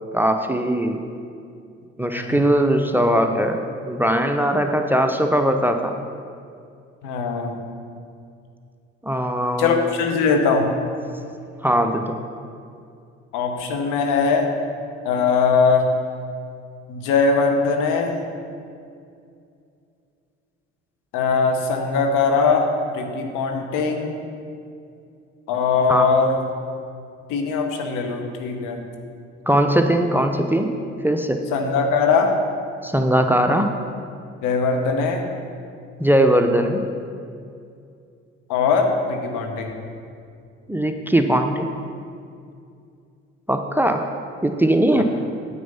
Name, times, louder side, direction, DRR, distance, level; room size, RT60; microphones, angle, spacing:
voice 1, 0.1-1.0 2.0-6.0 9.0-9.7 11.6-12.2 25.9-26.1 29.5-30.7 31.0-31.4 32.8-33.7 36.0-36.8 40.7-41.7 43.5-44.1 44.4-45.0, right 1 dB, 5° right, 5 dB, 0.7 m, -20 dB
voice 2, 7.0-7.6 9.6-10.7 13.3-14.5 15.0-15.9 16.9-18.2 21.1-24.2 25.5-26.4 27.3-28.8 31.5-32.4 34.4-35.3 38.5-39.7 45.0-45.1, left 4 dB, 60° left, 4 dB, 1.3 m, -21 dB
9.3 x 8.0 x 5.6 m, 2.4 s
figure-of-eight pair, 50°, 35 cm